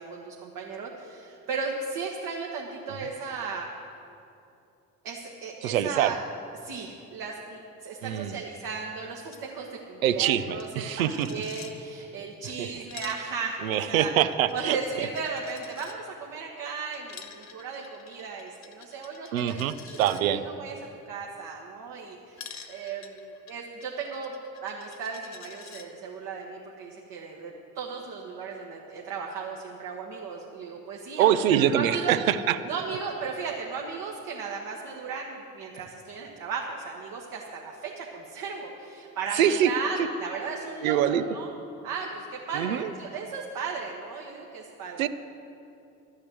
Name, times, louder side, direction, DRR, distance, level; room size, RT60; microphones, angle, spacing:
voice 1, 0.0-3.7 5.0-6.2 6.6-14.1 14.5-20.7 21.0-24.3 24.6-32.2 32.6-41.5 41.8-45.0, right 5 dB, 60° right, -1 dB, 1.4 m, -36 dB
voice 2, 5.6-6.1 8.0-8.4 10.0-11.3 12.6-12.7 13.6-14.8 19.3-20.4 31.2-32.6 39.3-39.7 40.8-41.2 42.5-42.9 45.0-45.1, right 10 dB, 90° right, 13 dB, 0.5 m, -24 dB
Coin (dropping), 9.3-9.4 9.7-9.8 10.0-11.7 12.6-16.0 16.9-20.2 22.4-25.9, left 7 dB, 45° left, 1.3 m, -48 dB
12.0 x 6.5 x 7.7 m, 2.7 s
hypercardioid pair, 55°, 40 cm